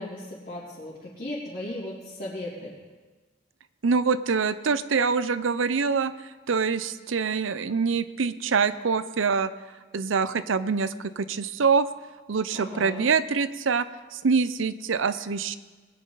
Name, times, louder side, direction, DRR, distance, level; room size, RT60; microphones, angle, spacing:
voice 1, 0.0-2.7 12.5-13.1, left 1 dB, 45° left, -10 dB, 3.0 m, -36 dB
voice 2, 3.8-6.1 6.5-9.5 9.9-11.9 12.3-13.9 14.1-15.6, right 5 dB, 85° right, 14 dB, 0.6 m, -25 dB
20.5 x 10.0 x 4.0 m, 1.3 s
head